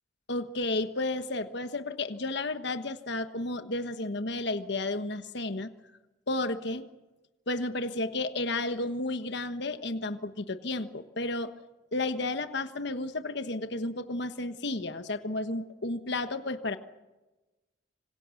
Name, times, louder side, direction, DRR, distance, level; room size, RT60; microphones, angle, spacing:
voice 1, 0.3-5.7 6.3-6.9 7.5-11.5 11.9-16.8, left 2 dB, 60° left, 9 dB, 1.3 m, -32 dB
26.5 x 25.5 x 6.5 m, 1.1 s
head